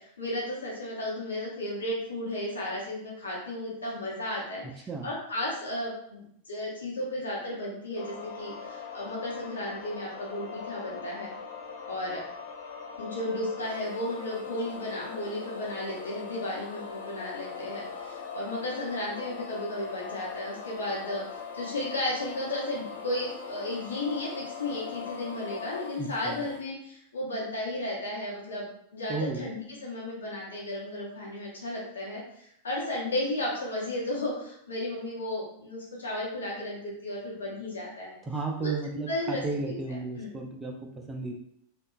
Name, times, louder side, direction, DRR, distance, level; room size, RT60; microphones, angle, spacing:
voice 1, 0.0-11.3 11.9-12.2 13.0-38.2 38.6-38.7 39.1-39.8 40.2-40.3, left 1 dB, 70° left, -4 dB, 0.8 m, -34 dB
sound 1, 8.0-25.9, left 6 dB, 55° left, 0.5 m, -41 dB
sound 2, 13.6-26.6, left 1 dB, 85° right, 0.5 m, -51 dB
voice 2, 26.0-26.4 29.1-29.5 38.3-41.4, right 3 dB, 15° right, 0 dB, 0.3 m, -34 dB
2.8 x 2.3 x 2.3 m, 0.72 s
figure-of-eight pair, 90°, 0 cm